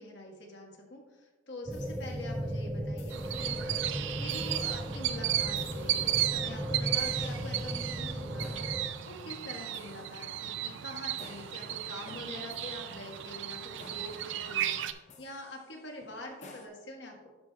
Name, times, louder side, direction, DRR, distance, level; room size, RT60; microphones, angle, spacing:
voice 1, 0.0-13.6 13.9-17.3, left 1 dB, 60° left, 1 dB, 1.4 m, -45 dB
sound 1, 1.7-2.5 3.0-3.6 4.3-4.9 5.6-16.7, left 2 dB, 35° left, 0.7 m, -55 dB
sound 2, 1.7-8.9, equal, 5° right, 0.5 m, -36 dB
sound 3, 3.1-14.9, right 12 dB, 65° right, 0.4 m, -34 dB
11.0 x 6.1 x 2.3 m, 1.2 s
head